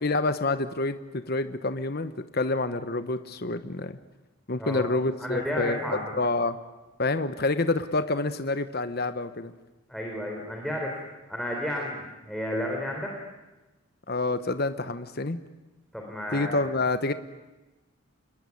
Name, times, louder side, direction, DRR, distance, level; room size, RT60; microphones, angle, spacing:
voice 1, 0.0-4.0 4.5-6.6 7.0-9.5 14.1-15.4 16.3-17.1, left 2 dB, 45° left, 10 dB, 1.1 m, -28 dB
voice 2, 5.2-6.0 9.9-11.0 11.3-13.1 15.9-16.6, left 1 dB, ahead, -1 dB, 3.8 m, -32 dB
27.5 x 21.0 x 9.6 m, 1.1 s
head